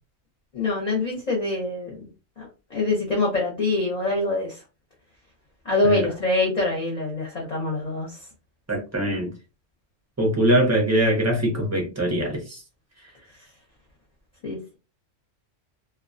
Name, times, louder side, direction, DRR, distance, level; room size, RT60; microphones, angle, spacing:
voice 1, 0.5-2.1 2.4-4.6 5.6-8.2 14.4-14.8, left 2 dB, 40° left, 0.6 m, -25 dB
voice 2, 8.7-9.3 10.2-12.6, right 1 dB, 20° right, 0.4 m, -22 dB
2.2 x 2.2 x 2.5 m
omnidirectional pair, 1.3 m